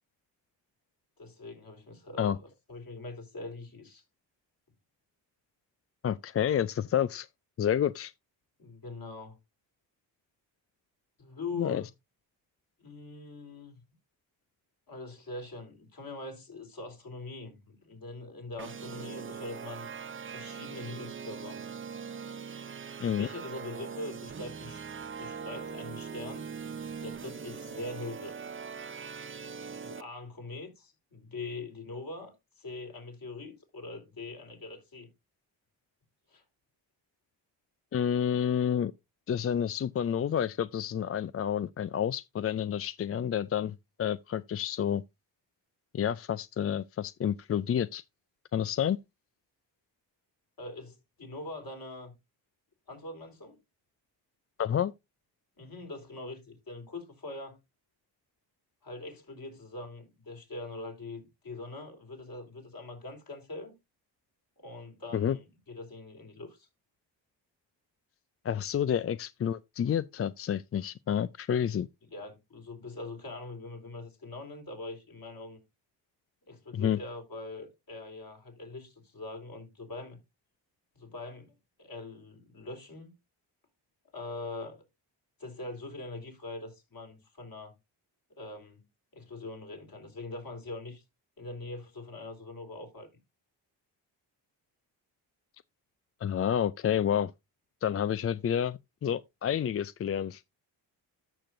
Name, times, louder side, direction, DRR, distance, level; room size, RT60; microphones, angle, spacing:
voice 1, 1.2-4.0 8.6-9.4 11.2-11.9 12.8-13.8 14.9-19.9 20.3-21.7 23.1-24.8 25.2-26.5 27.0-28.5 29.7-35.1 36.3-36.4 50.6-52.1 52.9-53.6 55.6-57.6 58.8-63.7 64.6-66.7 72.1-75.6 76.5-80.2 81.0-81.5 81.8-83.1 84.1-84.8 85.4-87.8 88.4-88.8 89.1-91.0 91.4-93.1, left 2 dB, 50° left, 4.1 m, -43 dB
voice 2, 6.0-7.3 7.6-8.1 11.6-11.8 23.0-23.3 37.9-38.9 39.3-45.0 45.9-48.0 48.5-49.0 54.6-54.9 65.1-65.4 68.4-71.9 76.7-77.0 96.2-97.3 97.8-100.4, left 9 dB, 30° left, 0.4 m, -29 dB
sound 1, 18.6-30.0, right 6 dB, 25° right, 0.7 m, -41 dB
13.5 x 6.0 x 2.6 m
supercardioid pair, 55°, 46 cm